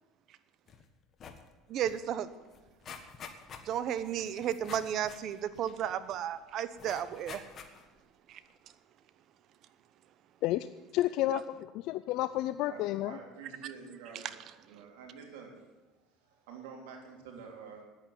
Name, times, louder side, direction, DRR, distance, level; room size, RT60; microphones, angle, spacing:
sound 1, 0.7-0.8 1.1-1.5 1.8-1.9 2.2-6.2 6.8-8.0 8.5-8.6, left 6 dB, 40° left, 1.5 m, -49 dB
voice 1, 1.7-2.3 3.7-7.4 8.3-8.4 11.3-11.4, right 10 dB, 55° right, 13 dB, 0.9 m, -33 dB
voice 2, 10.9-13.2, left 15 dB, 70° left, 12 dB, 0.4 m, -31 dB
voice 3, 12.7-14.3 14.7-15.7 16.2-17.8, right 5 dB, 85° right, 0 dB, 3.4 m, -48 dB
10.0 x 8.9 x 9.4 m, 1.2 s
supercardioid pair, 105°, 0 cm